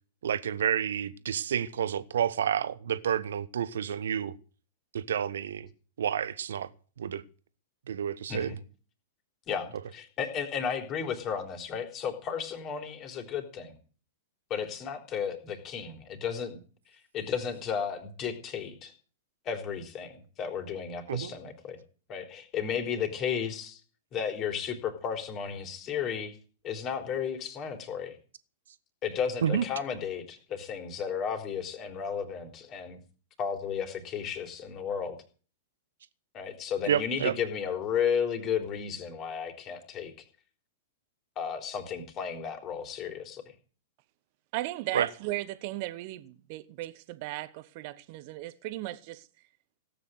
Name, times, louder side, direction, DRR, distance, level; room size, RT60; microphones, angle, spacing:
voice 1, 0.2-4.3 4.9-5.7 6.0-6.7 7.0-7.2 7.9-8.5 21.1-21.3 29.4-29.7 36.9-37.4 44.9-45.1, right 9 dB, 65° right, 1.1 m, -29 dB
voice 2, 9.5-13.7 14.5-16.6 17.1-18.9 19.5-21.8 22.1-23.8 24.1-26.3 26.6-28.2 29.0-33.0 33.4-35.2 36.3-40.1 41.4-43.5, left 7 dB, 30° left, 3.6 m, -33 dB
voice 3, 44.5-49.3, right 17 dB, 45° right, 1.2 m, -36 dB
17.0 x 8.9 x 7.9 m
figure-of-eight pair, 100°, 0 cm